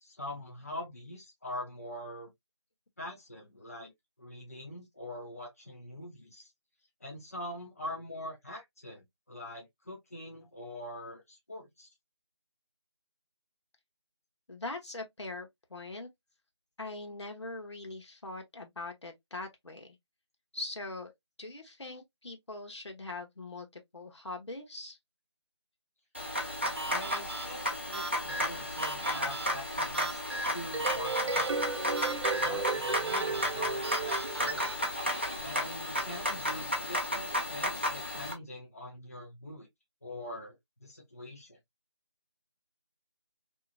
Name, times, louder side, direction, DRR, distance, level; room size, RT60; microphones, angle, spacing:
voice 1, 0.0-2.3 3.0-3.9 4.2-6.5 7.0-11.9 26.8-30.2 30.5-31.5 32.3-34.7 35.4-39.7 40.0-41.6, left 1 dB, 30° left, 0.6 m, -43 dB
voice 2, 14.5-16.1 16.8-20.0 20.5-21.1 21.4-25.0, left 2 dB, 75° left, 1.1 m, -42 dB
sound 1, 26.1-38.3, equal, 25° right, 0.5 m, -33 dB
sound 2, 26.8-34.8, right 2 dB, 60° right, 0.7 m, -40 dB
sound 3, 30.5-34.9, right 5 dB, 90° right, 0.4 m, -34 dB
2.8 x 2.5 x 2.4 m
figure-of-eight pair, 180°, 15 cm